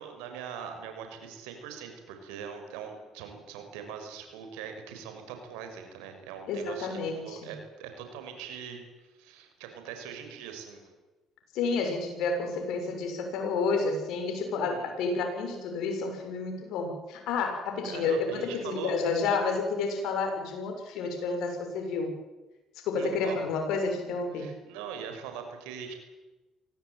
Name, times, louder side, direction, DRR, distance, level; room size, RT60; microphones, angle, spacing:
voice 1, 0.0-10.8 14.6-14.9 17.8-18.9 23.0-23.4 24.3-25.9, right 7 dB, 85° right, 6 dB, 6.0 m, -42 dB
voice 2, 6.5-7.5 11.5-22.1 22.8-24.5, left 4 dB, 75° left, 4 dB, 6.9 m, -30 dB
25.0 x 18.0 x 9.3 m, 1.1 s
supercardioid pair, 65°, 0 cm